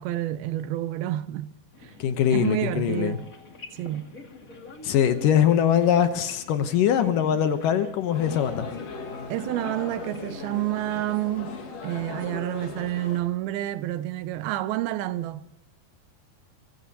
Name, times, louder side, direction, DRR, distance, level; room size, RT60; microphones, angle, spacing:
voice 1, 0.0-1.6 1.8-1.9 2.3-3.2 3.7-4.1 9.3-15.6, right 14 dB, 80° right, 2.5 m, -29 dB
sound 1, 1.7-11.3, left 3 dB, 30° left, 1.9 m, -46 dB
voice 2, 2.0-3.2 4.8-8.7, left 9 dB, 70° left, 2.3 m, -22 dB
sound 2, 8.1-13.2, left 4 dB, 50° left, 2.7 m, -38 dB
29.5 x 16.0 x 2.9 m
omnidirectional pair, 4.4 m